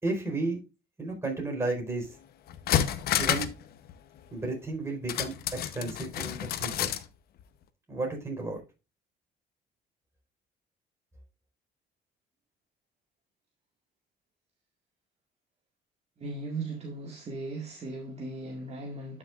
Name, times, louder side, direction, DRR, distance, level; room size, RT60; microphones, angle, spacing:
voice 1, 0.0-0.6 1.0-2.1 3.2-3.5 4.3-6.9 7.9-8.6, right 2 dB, 15° right, 4.4 m, -33 dB
sound 1, 2.1-2.2 2.5-3.6 3.9-4.0 5.1-7.1 7.4-7.5, left 10 dB, 65° left, 0.9 m, -29 dB
voice 2, 16.2-19.2, right 2 dB, 40° right, 1.9 m, -37 dB
12.0 x 6.3 x 2.4 m
cardioid pair, 110°, 17 cm